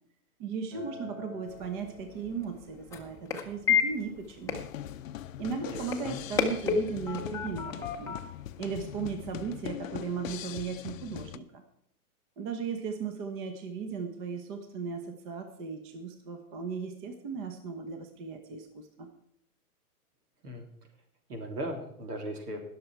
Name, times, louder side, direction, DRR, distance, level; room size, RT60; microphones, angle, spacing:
voice 1, 0.4-4.7 5.4-8.2 8.6-11.6 12.4-19.1, right 5 dB, 35° right, 7 dB, 1.2 m, -37 dB
Acoustic guitar, 0.7-5.9, equal, 50° right, 5.4 m, -51 dB
sound 1, 1.5-9.4, left 7 dB, 5° left, 0.7 m, -33 dB
sound 2, 4.5-11.4, left 12 dB, 60° left, 0.6 m, -41 dB
voice 2, 5.7-6.2 20.4-20.7 21.3-22.6, equal, 80° right, 4 dB, 3.3 m, -38 dB
20.0 x 6.9 x 4.6 m, 0.70 s
hypercardioid pair, 145°, 46 cm